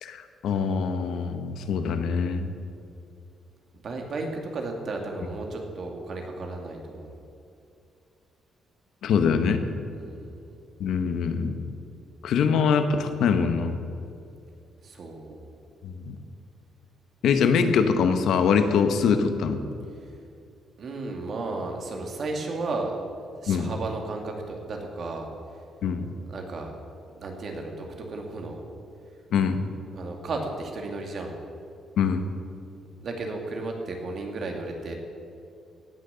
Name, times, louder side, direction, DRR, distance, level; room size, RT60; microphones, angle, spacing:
voice 1, 0.0-2.5 9.0-9.6 10.8-11.6 12.2-13.8 15.8-16.1 17.2-19.6 23.5-23.7 25.8-26.0 29.3-29.7 32.0-32.3, left 6 dB, 75° left, 9 dB, 0.9 m, -23 dB
voice 2, 3.8-7.2 9.9-10.6 14.8-15.5 20.0-20.1 20.8-22.9 23.4-25.3 26.3-26.7 27.2-28.6 29.9-31.4 33.0-34.9, right 3 dB, 55° right, 2 dB, 2.2 m, -34 dB
17.5 x 6.4 x 6.9 m, 2.5 s
cardioid pair, 90°, 0 cm